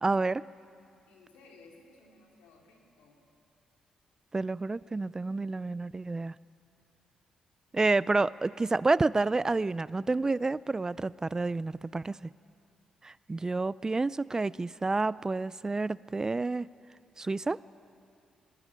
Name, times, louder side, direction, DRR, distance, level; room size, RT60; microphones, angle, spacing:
voice 1, 0.0-0.4 4.3-6.3 7.7-12.2 13.0-16.7 17.2-17.6, right 3 dB, 25° right, 20 dB, 0.4 m, -29 dB
voice 2, 1.1-3.2 7.7-7.9, left 3 dB, 85° left, 0 dB, 3.4 m, -58 dB
22.5 x 20.0 x 7.4 m, 2.5 s
supercardioid pair, 50°, 2 cm